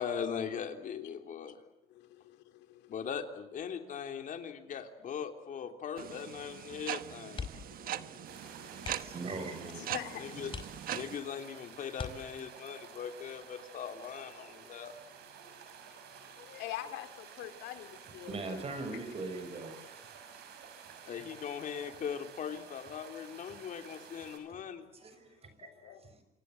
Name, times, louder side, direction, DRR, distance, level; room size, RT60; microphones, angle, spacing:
voice 1, 0.0-1.6 2.9-7.5 10.2-10.5 10.9-14.9 21.1-24.9, left 7 dB, 50° left, 6 dB, 3.3 m, -40 dB
voice 2, 1.9-3.0 7.7-9.1 9.7-10.3 16.4-18.6 25.6-26.0, left 13 dB, 90° left, 9 dB, 2.6 m, -45 dB
sound 1, 6.0-11.2, right 11 dB, 60° right, 1.2 m, -41 dB
sound 2, 7.3-7.8 8.1-8.3 8.8-9.3 9.9-10.0 10.5-11.2 11.9-12.7 14.3-14.6 14.9-15.0, left 5 dB, 30° left, 4.7 m, -43 dB
sound 3, 8.2-24.4, right 7 dB, 75° right, 6.7 m, -52 dB
voice 3, 8.5-9.9 18.1-19.7 24.5-24.6 24.9-26.2, right 3 dB, 35° right, 9 dB, 6.8 m, -42 dB
27.0 x 26.5 x 7.9 m, 0.87 s
cardioid pair, 110°, 17 cm